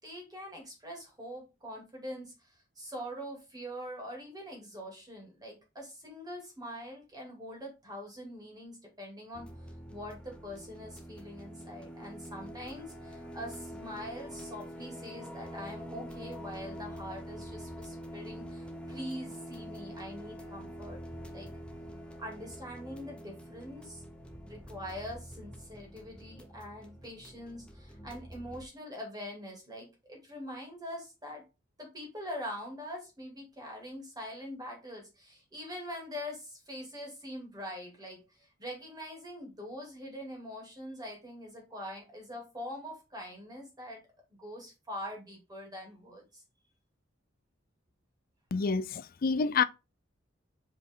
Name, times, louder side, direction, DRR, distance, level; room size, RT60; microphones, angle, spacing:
voice 1, 0.0-9.5 9.9-21.0 21.3-21.5 22.2-24.0 24.4-31.4 31.8-44.0 44.4-46.4, equal, 20° right, 2.9 m, -43 dB
sound 1, 9.3-28.6, equal, 5° left, 1.0 m, -45 dB
voice 2, 48.5-49.6, left 5 dB, 45° left, 0.5 m, -28 dB
5.2 x 5.2 x 3.8 m
head